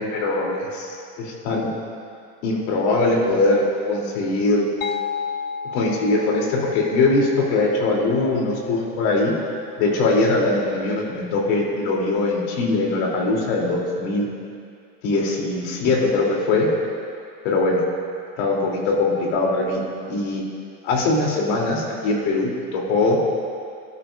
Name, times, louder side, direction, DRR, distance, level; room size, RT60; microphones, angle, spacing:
voice 1, 0.0-1.7 2.4-4.7 5.7-9.3 9.8-14.3 15.0-16.7 17.4-17.8 18.4-19.8 20.1-20.4 20.8-23.2, left 2 dB, 80° left, -2 dB, 3.3 m, -21 dB
sound 1, 4.8-10.3, left 7 dB, 30° left, 0.5 m, -34 dB
22.5 x 12.0 x 2.6 m, 2.4 s
cardioid pair, 155°, 32 cm